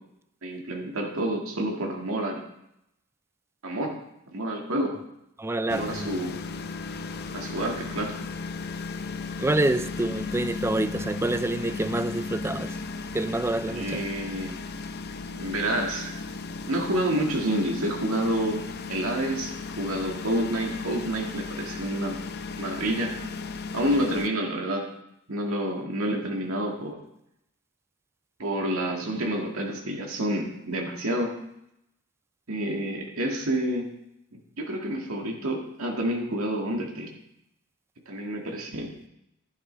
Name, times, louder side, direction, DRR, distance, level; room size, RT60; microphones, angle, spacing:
voice 1, 0.4-2.4 3.6-3.9 4.3-5.0 5.7-6.4 7.3-8.1 13.7-14.6 15.3-16.4 16.7-18.6 18.9-22.2 22.6-23.1 23.7-24.8 25.3-27.0 28.4-31.3 32.5-33.9 34.3-37.1 38.1-38.9, right 1 dB, 85° right, 1.9 m, -28 dB
voice 2, 5.4-6.1 9.4-12.8 13.1-14.1, right 2 dB, 10° right, 0.4 m, -27 dB
sound 1, 5.7-24.3, left 4 dB, 50° left, 0.6 m, -36 dB
11.5 x 11.5 x 3.4 m
head